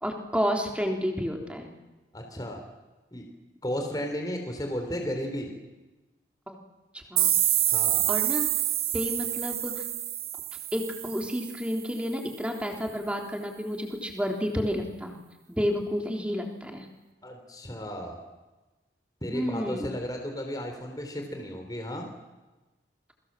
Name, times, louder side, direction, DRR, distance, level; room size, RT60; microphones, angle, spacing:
voice 1, 0.0-1.7 6.5-6.6 6.9-7.3 8.1-8.5 8.9-9.8 10.7-15.2 15.5-16.9 19.3-19.9, equal, 5° right, 3 dB, 3.6 m, -30 dB
voice 2, 2.1-2.6 3.1-3.2 3.6-5.5 7.6-8.1 17.2-18.2 19.2-22.1, equal, 20° left, 3 dB, 3.8 m, -34 dB
sound 1, 7.2-11.8, right 12 dB, 50° right, 3.2 m, -27 dB
29.0 x 23.5 x 7.7 m, 1.1 s
head